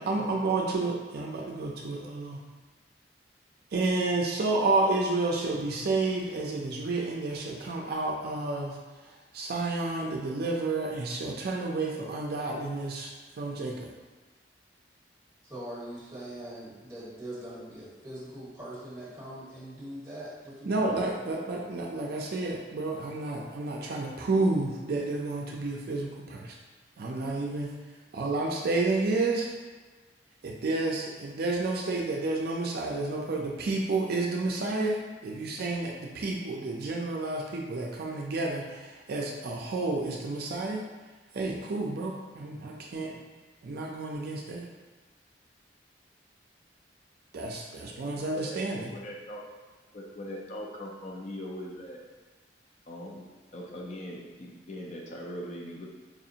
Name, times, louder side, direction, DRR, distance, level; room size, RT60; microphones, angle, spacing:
voice 1, 0.0-2.4 3.7-8.8 9.0-13.9 20.7-26.6 27.0-27.8 28.1-29.5 30.4-40.9 41.3-43.2 43.6-44.7 47.3-48.9, right 2 dB, 60° right, 0 dB, 0.4 m, -30 dB
voice 2, 15.4-21.0, right 1 dB, 15° right, -9 dB, 1.5 m, -42 dB
voice 3, 47.9-49.4 49.9-52.0 52.9-55.9, equal, 40° left, -1 dB, 0.4 m, -41 dB
4.7 x 2.5 x 2.7 m, 1.3 s
head